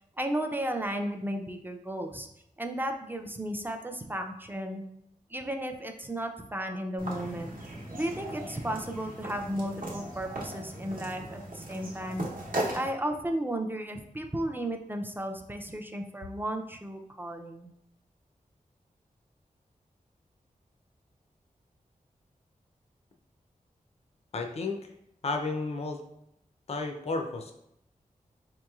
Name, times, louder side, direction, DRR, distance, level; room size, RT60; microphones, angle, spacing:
voice 1, 0.2-2.3 2.6-4.8 5.3-7.5 7.9-12.2 12.7-17.7, right 1 dB, 15° right, 4 dB, 0.3 m, -34 dB
sound 1, 7.0-12.9, right 1 dB, 75° right, 0.8 m, -37 dB
voice 2, 24.3-24.8 25.2-26.0 26.7-27.5, left 3 dB, 45° left, 3 dB, 0.4 m, -32 dB
4.5 x 3.0 x 2.3 m, 0.78 s
wide cardioid pair, 85°, 14 cm